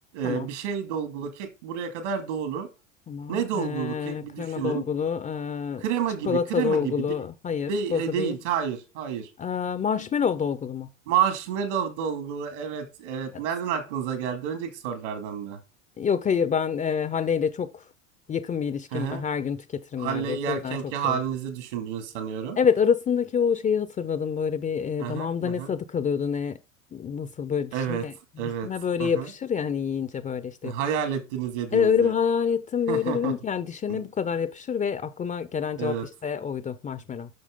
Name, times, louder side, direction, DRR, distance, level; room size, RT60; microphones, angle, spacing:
voice 1, 0.1-2.7 3.3-4.8 5.8-6.9 7.7-9.3 11.1-15.6 18.9-19.2 20.0-22.6 25.0-25.7 27.7-28.0 28.4-28.7 29.0-29.3 30.6-32.1 32.9-33.3 33.9-34.0 35.8-36.0, right 8 dB, 65° right, 2.5 m, -29 dB
voice 2, 3.1-5.9 6.3-8.4 9.4-10.9 13.3-13.4 16.0-17.8 18.3-20.8 21.0-21.2 22.6-26.6 26.9-30.7 31.7-36.0 36.2-37.3, left 7 dB, 20° left, 0.7 m, -27 dB
9.4 x 6.2 x 3.7 m
hypercardioid pair, 90°, 39 cm